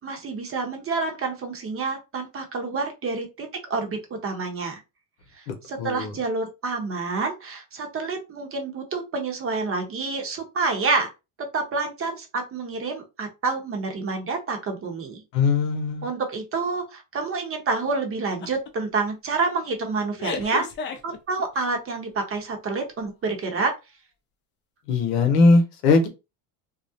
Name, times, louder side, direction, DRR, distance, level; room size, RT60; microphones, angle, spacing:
voice 1, 0.0-4.8 5.4-11.1 11.5-15.2 16.0-20.7 21.0-23.7, right 4 dB, 30° right, 0.7 m, -28 dB
voice 2, 5.5-6.1 15.3-16.1 24.9-26.1, left 3 dB, 90° left, 0.8 m, -20 dB
sound 1, 18.4-18.7 19.1-19.4 20.2-21.7, left 5 dB, 25° left, 0.3 m, -33 dB
2.4 x 2.0 x 2.6 m
supercardioid pair, 105°, 46 cm